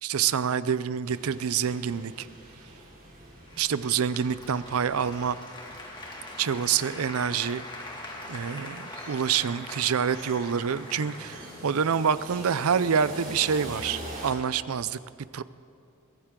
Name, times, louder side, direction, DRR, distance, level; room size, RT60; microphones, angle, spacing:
voice 1, 0.0-2.3 3.6-5.4 6.4-7.6 8.3-15.0 15.3-15.4, right 7 dB, 80° right, 16 dB, 0.5 m, -27 dB
sound 1, 1.0-14.3, right 1 dB, 40° right, 5.1 m, -45 dB
Applause, 3.5-12.5, left 1 dB, 20° left, 2.1 m, -43 dB
22.5 x 17.0 x 3.7 m, 2.6 s
head